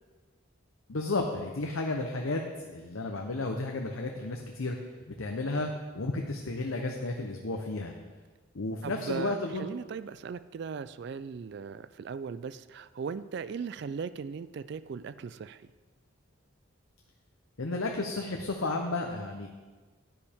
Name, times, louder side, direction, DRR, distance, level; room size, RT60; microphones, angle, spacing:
voice 1, 0.9-4.8 5.1-7.9 8.5-9.7 17.6-19.5, left 2 dB, 85° left, 2 dB, 0.8 m, -33 dB
voice 2, 8.8-15.6, right 6 dB, 55° right, 15 dB, 0.3 m, -38 dB
11.0 x 9.9 x 3.6 m, 1.3 s
head